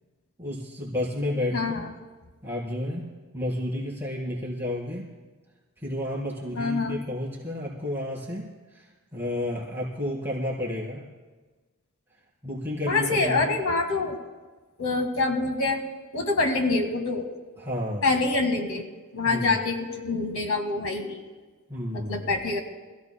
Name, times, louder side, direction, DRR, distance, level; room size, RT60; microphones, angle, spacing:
voice 1, 0.4-1.8 2.4-3.1 3.3-5.1 5.8-11.0 12.4-13.5 17.6-18.0 19.3-19.5 21.7-22.2, left 1 dB, 10° right, -7 dB, 3.6 m, -31 dB
voice 2, 1.5-1.9 6.5-7.0 12.9-14.2 14.8-15.8 16.1-17.3 18.0-18.9 19.1-21.2 21.9-22.6, left 3 dB, 85° left, 4 dB, 1.8 m, -26 dB
27.0 x 15.5 x 2.2 m, 1.3 s
head